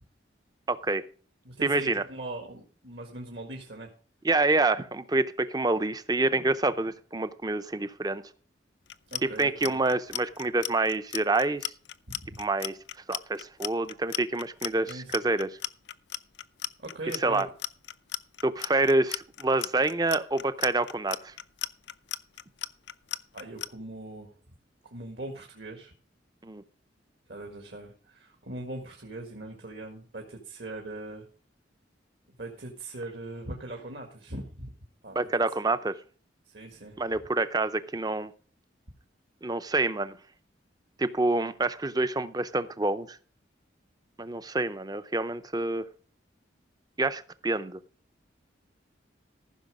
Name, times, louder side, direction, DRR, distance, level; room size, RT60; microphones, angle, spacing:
voice 1, 0.7-1.0 1.6-2.0 4.2-8.2 9.2-11.7 12.4-12.8 13.1-15.5 17.2-17.5 18.4-21.3 26.4-26.6 35.1-35.9 37.0-38.3 39.4-40.2 41.0-43.2 44.2-45.9 47.0-47.8, right 2 dB, 20° right, 13 dB, 0.6 m, -27 dB
voice 2, 1.5-3.9 9.1-9.8 12.1-12.4 14.9-15.1 16.8-17.4 23.3-24.3 24.8-25.9 27.3-31.3 32.4-34.7 35.0-35.3 36.5-37.0, right 2 dB, 65° right, 2 dB, 1.7 m, -40 dB
Clock, 8.9-23.7, left 13 dB, 65° left, 0.5 m, -35 dB
14.5 x 6.1 x 4.9 m, 0.41 s
head